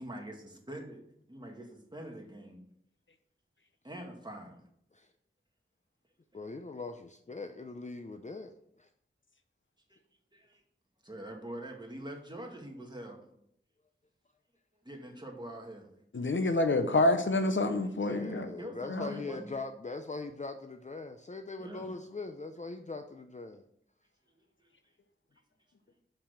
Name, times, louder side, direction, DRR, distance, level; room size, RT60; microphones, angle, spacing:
voice 1, 0.0-2.6 3.8-4.7 6.4-6.5 9.9-10.0 10.3-10.6 11.0-13.3 14.8-15.9 18.0-19.6 21.6-22.0 24.4-24.7, right 1 dB, 20° right, 2.1 m, -45 dB
voice 2, 6.3-8.9 18.1-23.6, left 3 dB, 35° left, 0.6 m, -41 dB
voice 3, 16.1-18.5 18.9-19.2, left 2 dB, 65° left, 0.9 m, -27 dB
6.8 x 5.8 x 6.5 m
wide cardioid pair, 65°, 21 cm